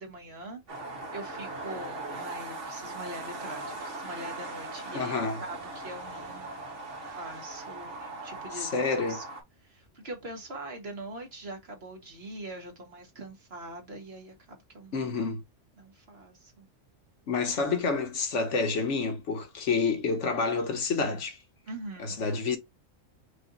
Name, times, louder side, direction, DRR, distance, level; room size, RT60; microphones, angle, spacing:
voice 1, 0.0-9.2 9.6-15.1 15.8-16.7 21.7-22.2, right 1 dB, 50° right, 1.7 m, -43 dB
sound 1, 0.7-9.4, right 2 dB, 65° right, 1.8 m, -39 dB
voice 2, 4.9-5.4 8.5-9.2 14.9-15.4 17.3-21.4 22.0-22.6, left 4 dB, 65° left, 1.4 m, -28 dB
5.2 x 2.6 x 3.9 m
omnidirectional pair, 1.3 m